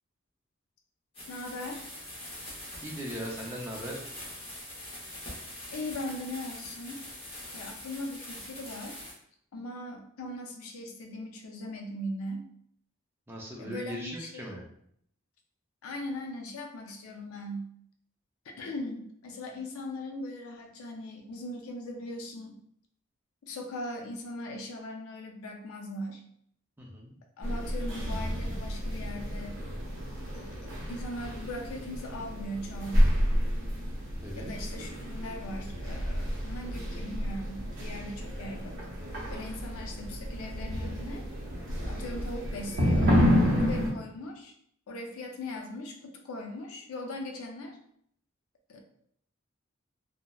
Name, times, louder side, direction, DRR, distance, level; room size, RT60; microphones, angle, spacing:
sound 1, 1.1-9.1, left 1 dB, 25° left, 0.7 m, -43 dB
voice 1, 1.3-1.9 5.7-7.0 7.5-9.0 9.5-12.5 13.6-14.6 15.8-17.7 18.4-22.6 23.4-26.2 27.4-29.6 30.3-33.3 34.4-38.7 39.3-41.3 41.8-43.2 43.5-44.5 44.9-47.8 48.7-48.8, left 1 dB, 90° left, 2 dB, 0.5 m, -39 dB
voice 2, 2.8-4.0 13.3-14.6 26.8-27.1 34.2-34.5, equal, 10° right, -3 dB, 0.4 m, -39 dB
sound 2, 27.4-43.9, equal, 65° right, 0.6 m, -30 dB
2.8 x 2.0 x 2.2 m, 0.68 s
head